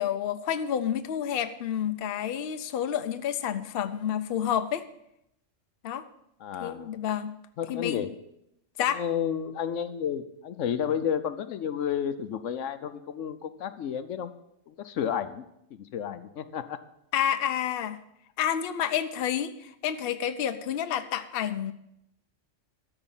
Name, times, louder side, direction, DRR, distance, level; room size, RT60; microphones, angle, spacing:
voice 1, 0.0-4.8 5.8-6.0 6.6-7.3 7.7-8.1 8.8-9.0 17.1-18.0 18.4-21.7, left 9 dB, 55° left, 10 dB, 0.8 m, -29 dB
voice 2, 6.4-7.0 7.6-8.1 8.9-14.3 14.7-15.4 15.7-16.8, left 8 dB, 75° left, 11 dB, 1.1 m, -31 dB
13.0 x 4.9 x 8.9 m, 0.80 s
omnidirectional pair, 1.3 m